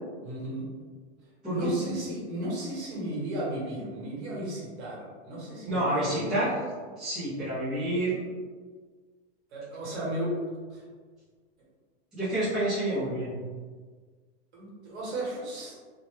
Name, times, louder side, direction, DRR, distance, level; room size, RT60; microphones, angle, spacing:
voice 1, 0.2-0.6 1.4-6.4 9.5-10.3 10.7-10.8 14.5-15.9, right 1 dB, 70° right, -5 dB, 1.3 m, -35 dB
voice 2, 1.4-2.0 5.6-6.6 7.0-8.2 12.1-13.4, right 1 dB, ahead, -16 dB, 0.4 m, -28 dB
2.8 x 2.1 x 3.2 m, 1.5 s
supercardioid pair, 180°, 34 cm